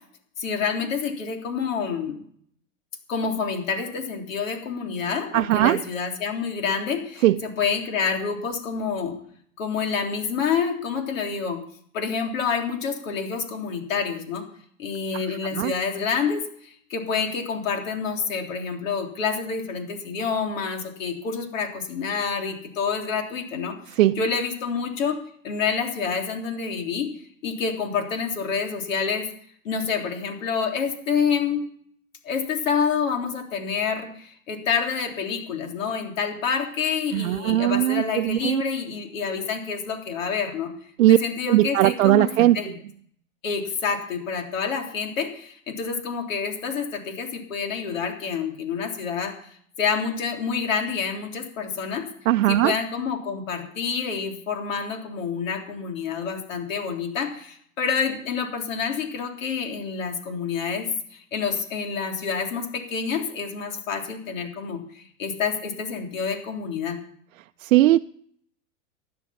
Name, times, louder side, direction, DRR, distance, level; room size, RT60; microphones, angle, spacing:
voice 1, 0.4-2.2 3.1-9.2 9.6-11.6 11.9-14.4 14.8-25.2 25.4-27.1 27.4-29.3 29.7-31.6 32.2-40.7 41.1-42.3 42.5-42.8 43.4-49.3 49.8-52.0 52.5-67.0, left 6 dB, 80° left, 3.5 m, -28 dB
voice 2, 5.3-5.8 7.2-7.4 15.1-15.7 23.9-24.2 37.1-38.6 41.0-41.2 41.5-42.7 52.3-52.7 67.6-68.0, right 15 dB, 85° right, 0.6 m, -19 dB
16.0 x 10.5 x 5.8 m
supercardioid pair, 140°, 39 cm